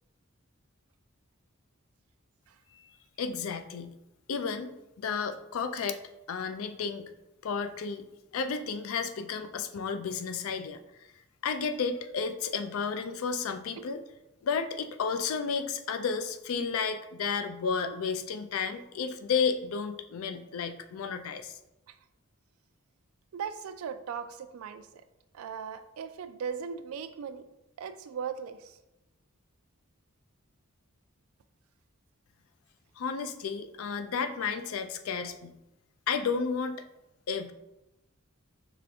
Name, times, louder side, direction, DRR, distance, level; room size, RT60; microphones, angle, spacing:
voice 1, 3.2-3.9 4.3-6.0 6.3-7.1 7.4-8.0 8.3-10.8 11.4-14.0 14.4-21.6 33.0-35.5 36.1-36.8 37.3-37.5, left 5 dB, 75° left, 9 dB, 0.4 m, -32 dB
voice 2, 23.3-25.0 25.3-27.4 27.8-28.8, right 7 dB, 85° right, 11 dB, 0.3 m, -38 dB
5.0 x 2.5 x 3.4 m, 0.90 s
head